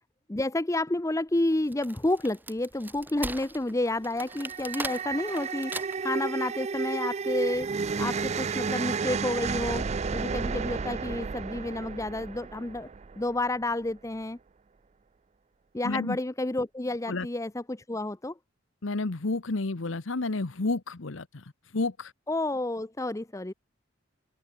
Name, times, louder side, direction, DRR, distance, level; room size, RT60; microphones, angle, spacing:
voice 1, 0.3-7.7 8.0-9.8 10.1-12.9 13.2-14.4 15.7-18.3 22.3-23.5, left 2 dB, 15° left, 0.6 m, -30 dB
Wood, 1.5-6.2, right 2 dB, 10° right, 1.2 m, -39 dB
sound 1, 4.2-13.5, right 5 dB, 35° right, 0.4 m, -32 dB
voice 2, 15.8-16.2 17.1-17.3 18.8-22.1, left 3 dB, 75° left, 1.0 m, -31 dB
head